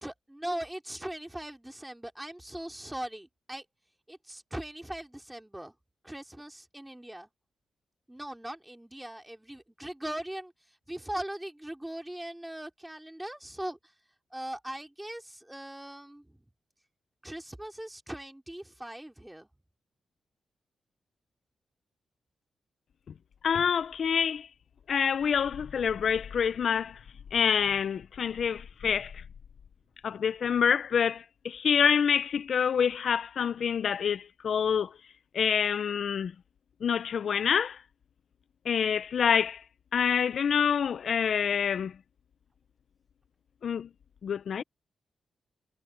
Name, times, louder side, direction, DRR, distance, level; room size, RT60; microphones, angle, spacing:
voice 1, 0.0-3.6 4.1-5.7 6.0-7.3 8.1-13.9 14.3-16.4 17.2-19.5, right 1 dB, 10° right, 3.0 m, -40 dB
voice 2, 23.4-24.5 24.9-27.0 27.3-29.2 30.0-34.9 35.3-36.3 36.8-37.8 38.7-39.6 39.9-41.9 43.6-43.9 44.2-44.6, left 7 dB, 65° left, 0.6 m, -27 dB
cardioid pair, 85°, 0 cm